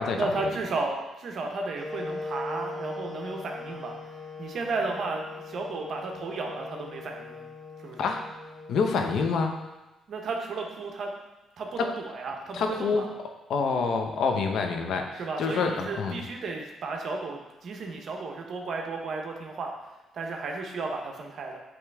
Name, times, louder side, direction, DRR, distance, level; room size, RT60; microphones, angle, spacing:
voice 1, 0.1-4.0 4.4-7.4 7.8-8.1 10.1-11.1 11.6-13.1 15.2-19.7 20.1-21.6, right 3 dB, 60° right, 1 dB, 0.9 m, -33 dB
sound 1, 1.7-9.7, left 3 dB, 20° left, 1.3 m, -40 dB
voice 2, 8.0-8.3 8.7-9.6 11.8-11.9 12.5-13.0 13.5-16.2, left 5 dB, 70° left, 4 dB, 0.8 m, -27 dB
8.6 x 3.1 x 3.5 m, 1.0 s
cardioid pair, 90°, 0 cm